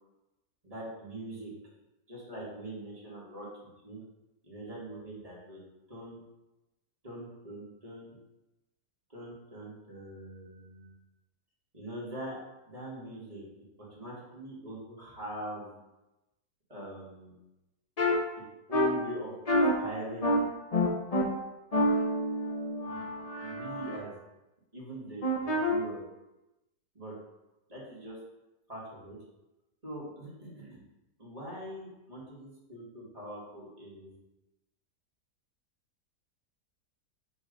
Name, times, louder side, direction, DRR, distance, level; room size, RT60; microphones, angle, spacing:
voice 1, 0.6-1.5 2.1-3.5 3.8-4.0 4.4-5.6 5.9-6.2 7.0-8.1 9.1-10.9 11.7-12.4 12.7-13.5 13.8-15.8 16.7-17.3 18.7-20.4 22.8-23.0 23.4-24.1 24.7-26.1 26.9-27.2 27.7-28.2 28.7-29.2 29.8-30.8 31.2-34.2, right 1 dB, 20° right, -6 dB, 1.7 m, -42 dB
sound 1, 18.0-18.1 18.7-18.9 19.5-19.7 20.2-20.4 20.7-21.2 21.7-24.0 25.2-25.7, left 1 dB, 40° left, 0.5 m, -27 dB
6.1 x 3.2 x 5.2 m, 0.98 s
omnidirectional pair, 1.8 m